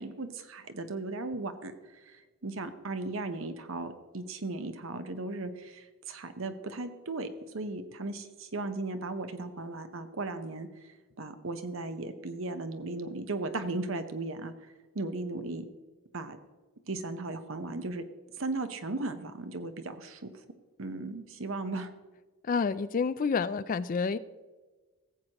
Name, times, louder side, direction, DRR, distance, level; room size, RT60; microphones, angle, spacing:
voice 1, 0.0-1.7 2.1-7.3 7.5-10.7 11.2-14.5 14.9-15.6 16.1-16.4 16.9-18.0 18.4-20.2 20.8-21.9, right 2 dB, 60° right, 9 dB, 0.9 m, -36 dB
voice 2, 22.4-24.2, left 5 dB, 40° left, 15 dB, 0.3 m, -29 dB
17.0 x 7.9 x 2.9 m, 1.3 s
head